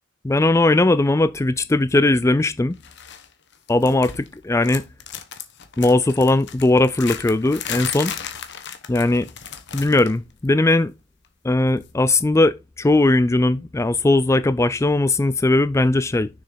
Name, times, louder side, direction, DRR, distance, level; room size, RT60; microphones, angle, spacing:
voice 1, 0.2-2.8 3.7-4.8 5.8-8.1 8.9-9.3 9.7-10.9 11.4-16.3, left 2 dB, 15° left, 0.4 m, -19 dB
sound 1, 2.8-3.3 3.5-4.3 4.6-10.2 10.5-10.7 11.8-11.9, left 8 dB, 60° left, 1.2 m, -35 dB
6.5 x 6.3 x 3.9 m
head